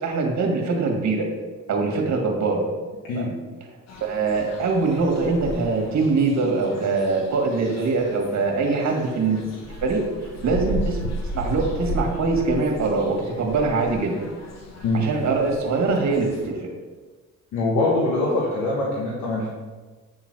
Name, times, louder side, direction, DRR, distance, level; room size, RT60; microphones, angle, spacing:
voice 1, 0.0-1.3 1.7-2.6 3.1-3.3 4.0-9.4 9.8-10.0 10.4-11.0 11.3-14.3 14.9-16.7, right 3 dB, 70° right, 1 dB, 1.8 m, -23 dB
sound 1, 3.9-16.5, equal, 60° left, 1.4 m, -35 dB
voice 2, 17.5-19.5, left 2 dB, 90° left, -4 dB, 1.5 m, -23 dB
8.3 x 4.0 x 6.1 m, 1.3 s
cardioid pair, 90°, 30 cm